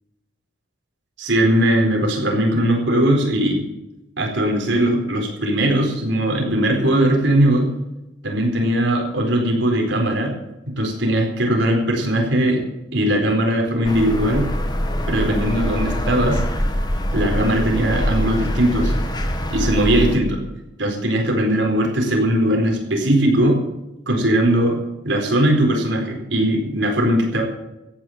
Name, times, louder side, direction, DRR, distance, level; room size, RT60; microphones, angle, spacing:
voice 1, 1.2-3.6 4.2-7.7 8.2-10.3 10.8-12.6 12.9-14.4 15.1-16.4 17.1-18.9 19.5-20.4 20.8-23.6 24.1-24.8 25.0-27.4, right 1 dB, 75° right, 1 dB, 4.4 m, -19 dB
sound 1, 13.8-20.2, equal, 20° left, 1.7 m, -23 dB
15.0 x 9.4 x 7.3 m, 0.96 s
head